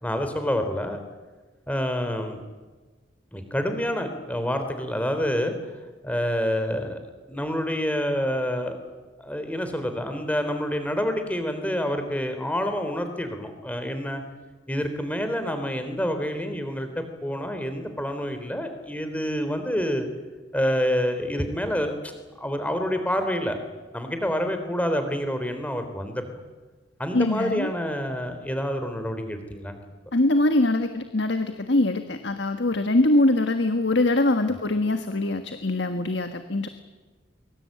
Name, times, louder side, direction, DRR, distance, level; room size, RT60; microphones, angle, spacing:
voice 1, 0.0-1.0 1.7-2.4 3.3-5.6 6.0-7.0 7.3-8.8 9.2-14.2 14.7-20.1 20.5-22.1 22.4-23.6 23.9-26.4 27.0-29.8, equal, 10° left, 7 dB, 3.7 m, -27 dB
voice 2, 27.1-27.7 30.1-36.7, left 2 dB, 60° left, 8 dB, 1.6 m, -23 dB
24.0 x 24.0 x 8.9 m, 1.3 s
head